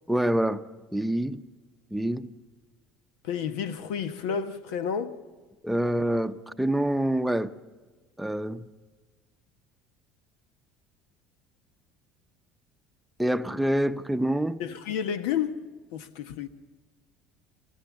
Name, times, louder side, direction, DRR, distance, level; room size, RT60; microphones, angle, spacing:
voice 1, 0.1-0.6 0.9-1.4 1.9-2.3 5.6-7.5 8.2-8.7 13.2-14.6, right 1 dB, 5° right, 0.8 m, -26 dB
voice 2, 3.2-5.2 14.6-15.6 15.9-16.5, left 7 dB, 75° left, 1.1 m, -30 dB
29.0 x 14.0 x 7.2 m
hypercardioid pair, 80°, 0 cm